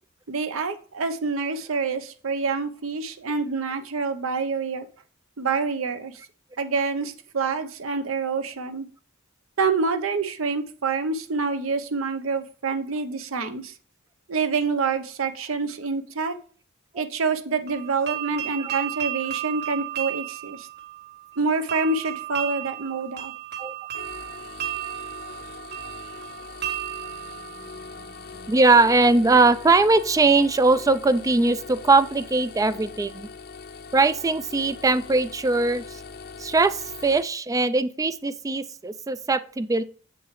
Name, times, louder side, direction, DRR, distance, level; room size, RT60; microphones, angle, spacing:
voice 1, 0.3-4.9 5.4-6.1 6.6-8.9 9.6-13.7 14.3-16.4 16.9-20.7 21.4-23.3, right 4 dB, 70° right, 9 dB, 0.8 m, -27 dB
sound 1, 17.7-28.5, right 13 dB, 50° right, 1.2 m, -34 dB
sound 2, 23.9-37.2, left 5 dB, 50° left, 0.6 m, -41 dB
voice 2, 28.4-33.3 33.9-36.0 36.4-39.8, right 3 dB, 15° right, 14 dB, 0.3 m, -20 dB
7.4 x 6.9 x 3.2 m, 0.43 s
head